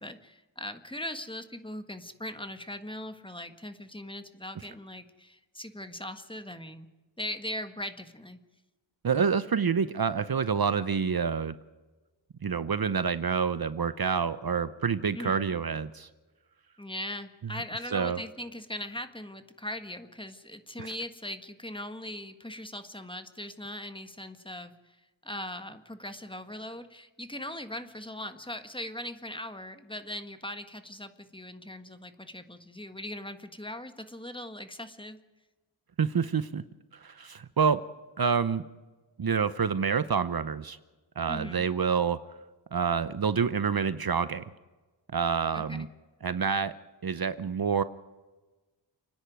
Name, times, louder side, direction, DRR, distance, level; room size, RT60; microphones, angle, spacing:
voice 1, 0.0-6.9 7.2-8.4 15.1-15.5 16.8-25.0 25.2-35.2 41.3-41.6 45.5-45.9, left 1 dB, 10° left, 9 dB, 1.6 m, -40 dB
voice 2, 9.0-11.5 12.4-16.1 17.9-18.2 20.8-20.9 36.0-36.6 36.9-37.8 38.2-38.6 39.2-40.8 41.2-42.2 42.7-44.4 45.1-45.9 46.2-46.7 47.0-47.8, right 6 dB, 50° right, 14 dB, 0.8 m, -27 dB
29.5 x 10.0 x 9.3 m, 1.2 s
wide cardioid pair, 100°, 46 cm